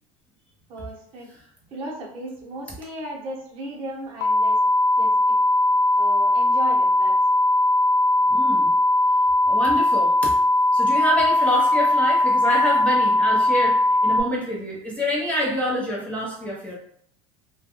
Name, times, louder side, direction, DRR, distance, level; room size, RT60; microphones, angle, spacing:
voice 1, 0.7-1.3 1.7-4.6 5.0-5.3 6.0-7.1, right 1 dB, 35° right, -4 dB, 0.9 m, -35 dB
sound 1, 4.2-14.2, left 1 dB, 75° left, 0.4 m, -19 dB
voice 2, 8.3-8.7 9.4-10.3 10.7-16.7, equal, 5° left, -5 dB, 0.7 m, -27 dB
2.3 x 2.2 x 2.9 m, 0.66 s
supercardioid pair, 130°, 17 cm